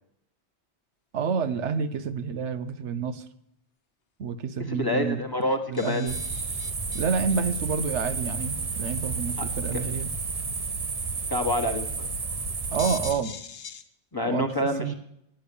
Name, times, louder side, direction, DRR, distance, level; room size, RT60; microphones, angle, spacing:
voice 1, 1.1-3.2 4.2-5.2 5.7-6.2 6.9-10.1 12.7-13.4 14.2-14.9, right 6 dB, 80° right, 11 dB, 1.1 m, -29 dB
voice 2, 4.7-6.1 9.4-9.5 11.3-12.1 14.1-14.9, left 1 dB, 20° left, 4 dB, 1.2 m, -27 dB
sound 1, 5.1-5.2 5.4-5.5 5.7-7.4 8.1-8.2 9.3-9.6 11.7-11.8 12.1-12.2 12.6-13.8, left 7 dB, 80° left, 1.2 m, -41 dB
sound 2, 6.1-13.1, right 4 dB, 35° right, 0.9 m, -31 dB
9.9 x 9.0 x 8.3 m, 0.77 s
omnidirectional pair, 1.2 m